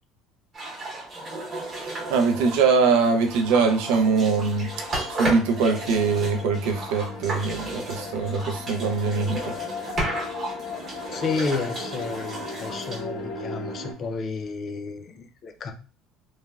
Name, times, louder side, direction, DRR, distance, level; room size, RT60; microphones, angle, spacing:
sound 1, 0.5-14.1, right 2 dB, 30° right, 0.8 m, -34 dB
sound 2, 1.6-13.9, left 4 dB, 70° left, 0.7 m, -38 dB
voice 1, 1.8-9.4, right 4 dB, 90° right, 0.4 m, -23 dB
voice 2, 11.1-15.7, left 4 dB, 30° left, 0.3 m, -31 dB
3.1 x 2.1 x 2.3 m
cardioid pair, 165°, 0 cm